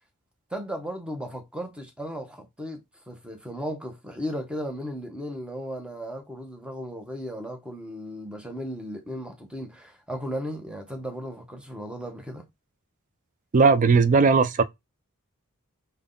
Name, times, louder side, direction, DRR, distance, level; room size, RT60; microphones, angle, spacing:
voice 1, 0.5-12.5, equal, 5° right, 0.9 m, -36 dB
voice 2, 13.5-14.6, right 4 dB, 35° right, 0.4 m, -18 dB
3.5 x 2.1 x 3.8 m
head